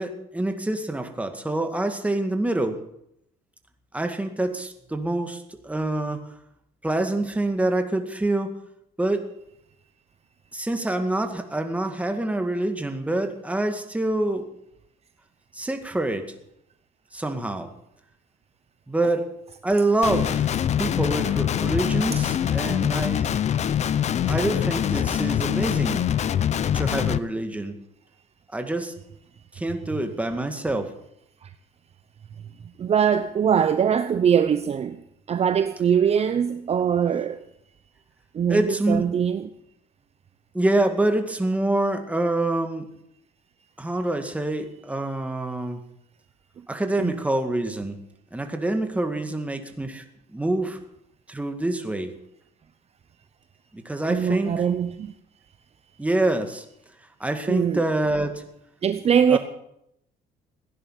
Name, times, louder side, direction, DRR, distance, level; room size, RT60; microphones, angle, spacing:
voice 1, 0.0-2.8 3.9-6.2 6.8-8.5 9.0-9.3 10.5-14.5 15.5-16.3 17.1-17.7 18.9-19.3 19.6-20.5 20.8-23.4 24.3-26.0 26.7-27.8 28.5-28.9 29.5-30.9 38.5-39.1 40.5-42.9 43.8-45.8 46.7-48.0 48.3-50.0 50.3-50.8 51.3-52.1 53.7-54.5 56.0-56.6 57.2-58.4 59.3-59.4, right 2 dB, 10° right, 2.0 m, -26 dB
Guitar, 20.0-27.2, left 9 dB, 40° left, 0.6 m, -24 dB
voice 2, 32.8-35.0 35.3-37.4 38.3-39.5 47.0-47.1 54.1-55.1 57.5-57.8 58.8-59.4, right 8 dB, 40° right, 0.8 m, -22 dB
16.0 x 10.5 x 7.5 m
cardioid pair, 110°, 17 cm